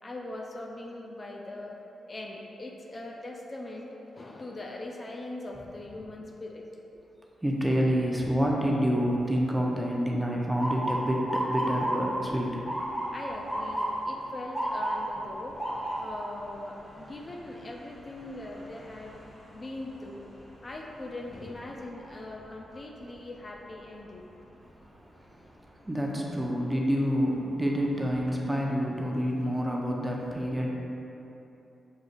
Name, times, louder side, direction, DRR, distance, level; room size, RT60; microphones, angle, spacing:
voice 1, 0.0-1.8 2.1-6.7 13.1-15.6 16.0-19.2 19.5-20.3 20.6-24.3, left 2 dB, 40° left, -1 dB, 0.4 m, -41 dB
voice 2, 7.4-12.5 25.2-25.3 25.8-30.7, equal, 10° right, -2 dB, 0.7 m, -27 dB
Motor vehicle (road) / Siren, 10.6-22.5 22.9-23.4 24.2-24.5 26.3-26.6 27.1-27.2 27.6-28.3, right 1 dB, 10° left, 1.0 m, -35 dB
6.3 x 2.6 x 2.5 m, 2.9 s
supercardioid pair, 50°, 0 cm